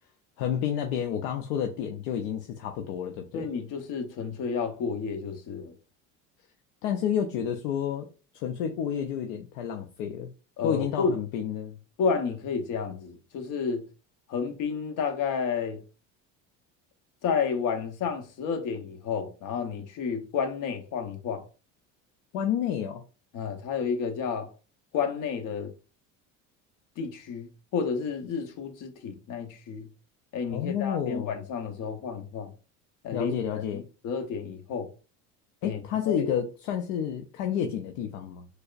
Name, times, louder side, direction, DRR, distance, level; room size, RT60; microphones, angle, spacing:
voice 1, 0.4-3.5 6.8-8.1 8.3-10.3 10.6-11.8 22.3-23.0 30.5-31.4 33.1-33.8 35.6-38.5, left 9 dB, 75° left, 0.6 m, -30 dB
voice 2, 3.3-5.7 10.6-11.1 12.0-13.8 14.3-15.8 17.2-21.4 23.3-24.5 24.9-25.7 27.0-29.9 30.3-32.5 33.0-34.9 35.6-35.8 36.1-36.3, left 6 dB, 55° left, 0.9 m, -31 dB
4.5 x 2.1 x 2.5 m
supercardioid pair, 95°, 37 cm